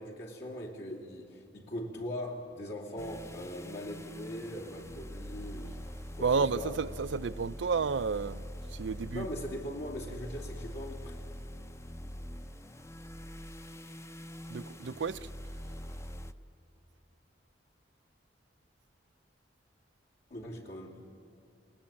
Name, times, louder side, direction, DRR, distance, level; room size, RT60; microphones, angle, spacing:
voice 1, 0.0-5.7 6.1-6.8 9.1-11.2 20.3-21.0, equal, 65° left, 2.7 m, -40 dB
sound 1, 3.0-16.3, equal, 15° left, 0.6 m, -44 dB
voice 2, 6.2-8.4 8.7-9.3 14.5-15.2, right 5 dB, 85° right, 0.5 m, -31 dB
28.5 x 19.0 x 8.7 m
head